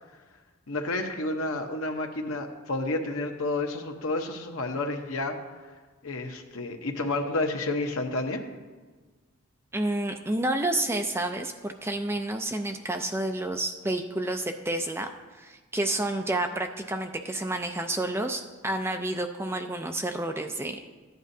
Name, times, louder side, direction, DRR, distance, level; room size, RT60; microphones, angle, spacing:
voice 1, 0.7-5.4 6.0-8.4, left 2 dB, 75° left, 4 dB, 1.0 m, -30 dB
voice 2, 9.7-15.1 15.4-20.8, right 1 dB, 10° right, 5 dB, 0.4 m, -30 dB
13.5 x 9.3 x 2.7 m, 1.3 s
head